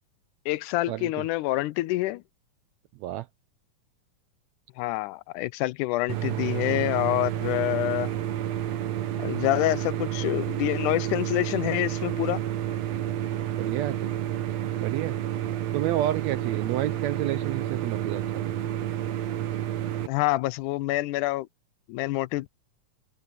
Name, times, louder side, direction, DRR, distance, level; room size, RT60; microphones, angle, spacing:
voice 1, 0.5-2.2 4.8-8.1 9.2-12.4 20.1-21.5 21.9-22.6, left 18 dB, 80° left, 2.0 m, -27 dB
sound 1, 6.1-20.1, right 11 dB, 65° right, 2.1 m, -30 dB
voice 2, 13.6-14.1 14.8-15.2 15.7-18.7, right 14 dB, 80° right, 1.6 m, -30 dB
omnidirectional pair, 3.6 m